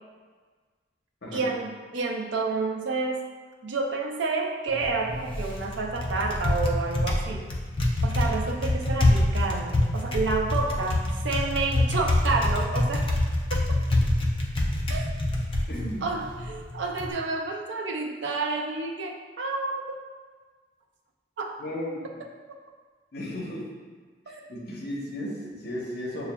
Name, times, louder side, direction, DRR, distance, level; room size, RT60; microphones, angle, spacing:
voice 1, 1.3-3.3 3.6-7.5 8.0-13.1 13.5-13.6 14.9-15.1 16.0-20.0 21.4-21.5 24.3-24.4, right 3 dB, 80° right, 2 dB, 0.5 m, -29 dB
Typing, 4.7-17.1, left 1 dB, 30° left, 0.5 m, -26 dB
voice 2, 15.7-16.1 21.6-22.0 23.1-23.7 24.3-26.3, left 1 dB, 60° left, -3 dB, 0.8 m, -35 dB
6.7 x 2.3 x 2.2 m, 1.5 s
head